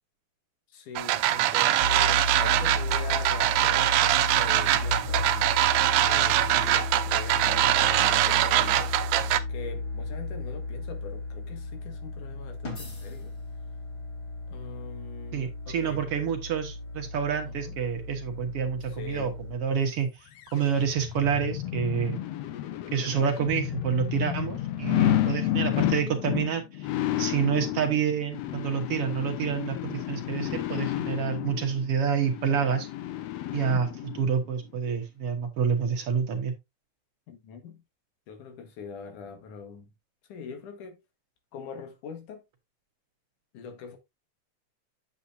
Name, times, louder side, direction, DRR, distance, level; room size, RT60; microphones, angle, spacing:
voice 1, 0.7-13.4 14.5-16.0 17.4-17.8 18.9-19.4 37.3-37.8 38.3-39.9 40.3-41.0 41.5-42.4 43.5-44.0, left 5 dB, 90° left, 3.1 m, -43 dB
sound 1, 1.0-9.4, right 13 dB, 90° right, 2.2 m, -23 dB
sound 2, 1.8-19.6, left 2 dB, 30° left, 3.4 m, -34 dB
voice 2, 15.3-22.2 22.9-26.9 27.2-32.9 33.5-36.5, right 7 dB, 60° right, 1.9 m, -28 dB
sound 3, 20.4-34.3 34.7-34.8, left 13 dB, 70° left, 1.7 m, -31 dB
8.4 x 7.6 x 2.6 m
omnidirectional pair, 3.5 m